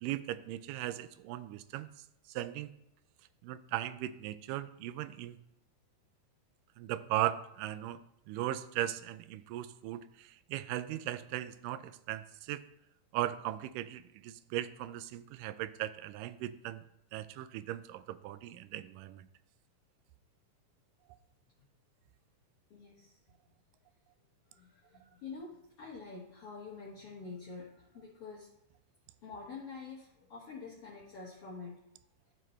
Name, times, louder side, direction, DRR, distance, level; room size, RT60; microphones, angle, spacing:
voice 1, 0.0-1.9 2.3-2.7 3.4-5.4 6.8-12.6 13.1-16.8 17.1-19.3, right 13 dB, 90° right, 13 dB, 2.2 m, -38 dB
voice 2, 22.7-23.2 24.5-28.5 29.2-31.8, left 4 dB, 55° left, -5 dB, 2.1 m, -47 dB
12.5 x 6.2 x 3.2 m, 0.79 s
omnidirectional pair, 3.7 m